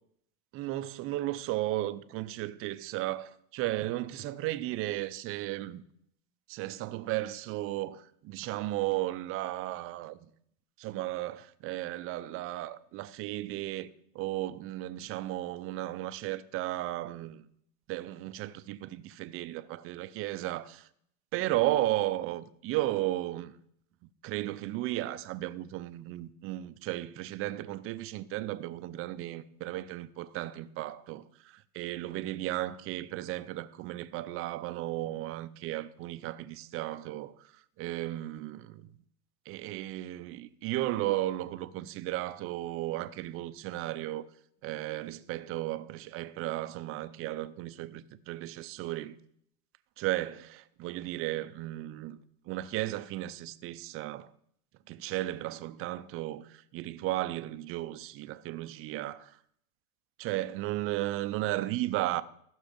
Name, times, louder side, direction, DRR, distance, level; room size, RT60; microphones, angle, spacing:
voice 1, 0.5-5.8 6.5-10.3 10.8-17.5 17.9-20.9 21.3-23.5 24.0-38.9 39.5-44.3 44.6-49.1 50.0-52.2 52.5-54.3 54.9-59.4 60.2-62.2, right 16 dB, 30° right, 0.5 m, -35 dB
15.0 x 6.5 x 5.2 m
hypercardioid pair, 120°, 47 cm